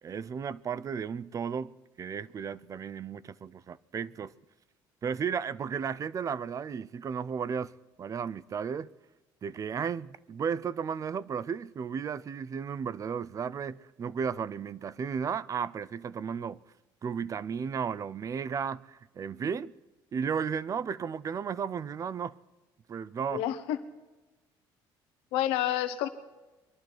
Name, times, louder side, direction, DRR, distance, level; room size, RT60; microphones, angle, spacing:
voice 1, 0.0-4.3 5.0-7.7 8.0-8.9 9.4-16.6 17.0-19.7 20.1-22.4 22.9-23.4, right 6 dB, 35° right, 0.5 m, -34 dB
voice 2, 23.3-23.8 25.3-26.1, left 12 dB, 90° left, 1.2 m, -29 dB
23.0 x 11.5 x 4.6 m
cardioid pair, 105°, 9 cm